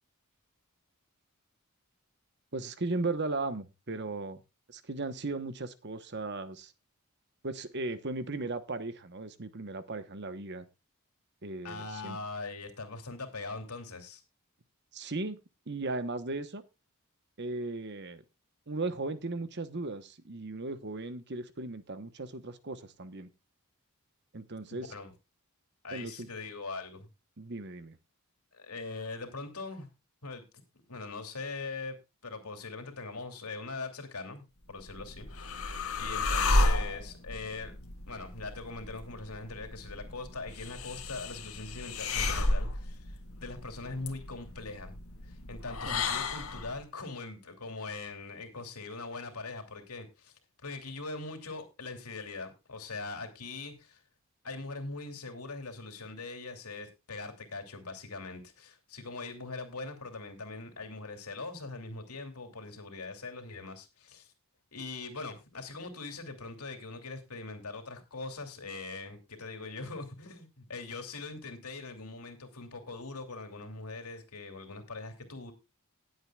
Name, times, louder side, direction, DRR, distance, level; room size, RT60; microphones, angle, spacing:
voice 1, 2.5-4.4 4.7-6.7 7.4-10.7 11.4-12.2 14.9-15.4 15.7-16.6 17.4-18.2 18.7-23.3 24.3-24.9 25.9-26.3 27.4-28.0 45.8-46.0, right 2 dB, 50° right, 12 dB, 1.1 m, -37 dB
voice 2, 11.6-14.2 24.7-25.1 25.8-27.1 28.5-29.9 30.2-30.4 30.7-32.0 32.2-35.3 35.7-37.7 38.1-45.0 45.2-50.3 50.6-54.0 54.4-64.3 64.7-75.5, left 3 dB, 85° left, 5 dB, 2.8 m, -41 dB
sound 1, 34.7-46.8, left 2 dB, 70° left, 1.8 m, -33 dB
19.5 x 7.9 x 2.4 m, 0.26 s
head